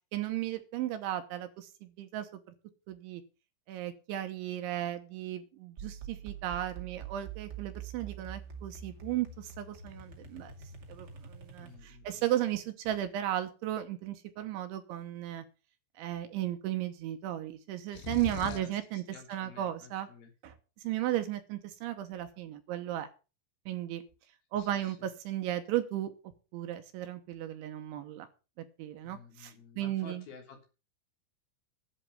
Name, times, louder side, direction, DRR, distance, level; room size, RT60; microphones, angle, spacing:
voice 1, 0.1-2.3 2.9-3.2 3.7-10.5 10.9-15.4 16.0-19.0 19.3-20.1 20.4-20.5 20.8-23.1 23.7-24.0 24.5-26.1 26.5-28.3 28.6-30.2, right 13 dB, 75° right, 8 dB, 3.1 m, -35 dB
sound 1, 5.8-12.1, right 7 dB, 50° right, 1.2 m, -45 dB
voice 2, 11.6-12.3 18.4-20.3 24.5-25.1 29.0-30.6, left 5 dB, 50° left, 2 dB, 4.7 m, -52 dB
sound 2, 17.9-18.8, left 6 dB, 70° left, 2.7 m, -39 dB
11.0 x 8.5 x 6.8 m, 0.33 s
omnidirectional pair, 6.0 m